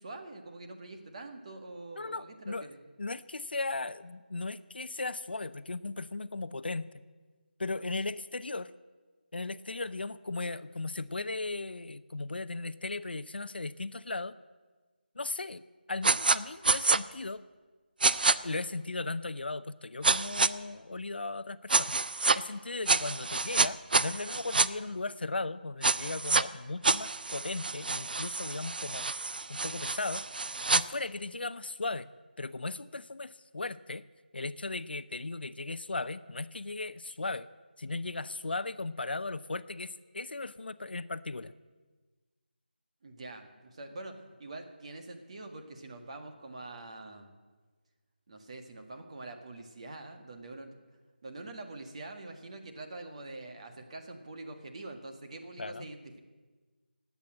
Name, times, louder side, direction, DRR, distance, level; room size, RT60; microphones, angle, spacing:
voice 1, 0.0-2.8 43.0-47.3 48.3-50.8 51.2-56.2, right 2 dB, 35° right, 5 dB, 1.7 m, -45 dB
voice 2, 2.0-2.7 3.0-6.9 7.6-8.7 9.3-14.4 15.1-15.6 15.9-17.4 18.4-21.9 22.3-29.1 29.5-30.2 30.7-32.1 32.4-34.0 34.3-37.5 37.8-41.5 55.6-55.9, left 3 dB, 70° left, 15 dB, 0.6 m, -37 dB
sound 1, 16.0-16.4 16.6-17.0 18.0-18.3 20.0-20.5 21.7-22.4 22.9-24.7 25.8-26.4 26.8-30.8, right 3 dB, 60° right, 0.5 m, -27 dB
19.0 x 8.5 x 7.7 m, 1.3 s
figure-of-eight pair, 165°, 6 cm